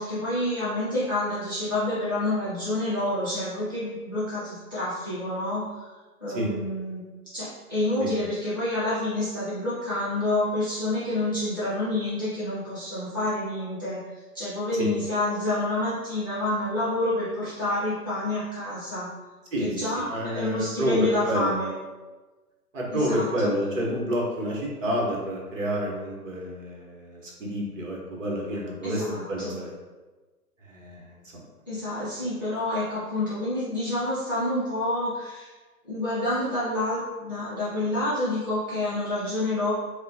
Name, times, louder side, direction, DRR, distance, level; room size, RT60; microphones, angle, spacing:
voice 1, 0.0-5.8 6.2-7.0 7.3-14.0 14.3-19.1 19.6-21.7 22.9-23.5 28.8-29.6 31.7-35.5 35.8-39.7, left 1 dB, 15° left, -12 dB, 0.4 m, -28 dB
voice 2, 19.5-21.5 22.7-29.7 30.7-31.4, equal, 55° right, -2 dB, 1.2 m, -29 dB
5.1 x 2.1 x 2.8 m, 1.3 s
figure-of-eight pair, 125°, 46 cm